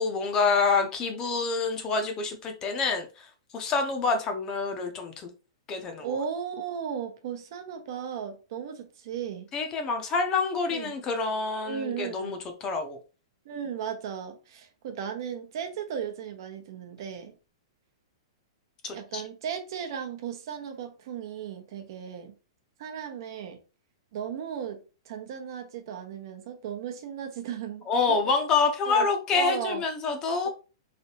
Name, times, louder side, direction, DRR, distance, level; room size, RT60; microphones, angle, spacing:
voice 1, 0.0-3.3 3.5-5.3 5.7-6.2 9.5-13.0 18.8-19.2 27.9-30.5, left 4 dB, 20° left, 0.6 m, -27 dB
voice 2, 6.0-9.5 10.7-10.9 11.6-12.4 13.4-17.4 18.9-22.3 22.8-23.6 24.1-28.2 28.9-29.1 29.3-29.8 30.4-30.5, right 8 dB, 55° right, 0.7 m, -36 dB
3.3 x 2.7 x 2.8 m
hypercardioid pair, 155°, 3 cm